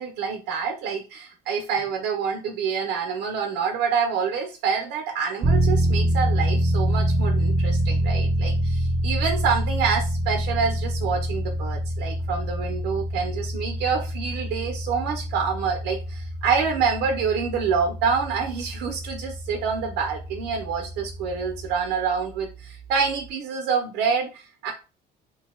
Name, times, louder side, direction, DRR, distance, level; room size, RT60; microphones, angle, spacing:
voice 1, 0.0-24.7, right 6 dB, 90° right, 3 dB, 0.7 m, -27 dB
sound 1, 5.4-21.8, right 1 dB, 40° right, 0.8 m, -26 dB
3.2 x 2.2 x 4.3 m, 0.31 s
cardioid pair, 110°, 17 cm